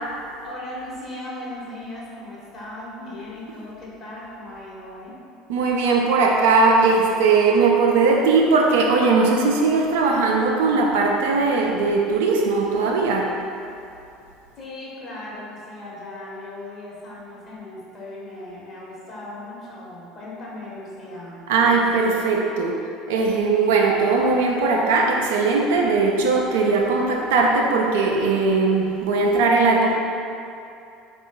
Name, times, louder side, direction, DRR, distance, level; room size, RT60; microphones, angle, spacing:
voice 1, 0.4-5.2 14.6-21.8 22.1-22.4, left 1 dB, 35° left, -5 dB, 1.2 m, -37 dB
voice 2, 5.5-13.4 21.5-22.7 23.1-29.9, right 4 dB, 65° right, 0 dB, 0.4 m, -19 dB
4.3 x 2.4 x 3.7 m, 2.7 s
figure-of-eight pair, 65°, 0 cm